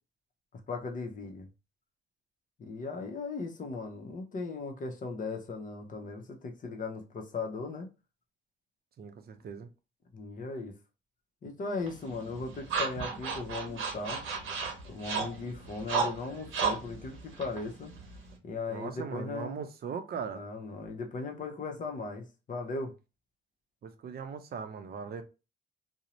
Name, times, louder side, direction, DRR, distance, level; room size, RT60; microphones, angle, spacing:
voice 1, 0.7-1.5 2.6-7.9 10.1-10.7 11.4-14.2 14.9-17.9 18.4-19.6 20.3-22.9, left 3 dB, 40° left, 0.6 m, -38 dB
voice 2, 9.0-9.7 18.7-20.4 23.8-25.2, right 6 dB, 50° right, 0.5 m, -39 dB
sound 1, 11.9-18.4, right 5 dB, 90° right, 0.8 m, -35 dB
2.5 x 2.0 x 2.9 m
cardioid pair, 90°, 20 cm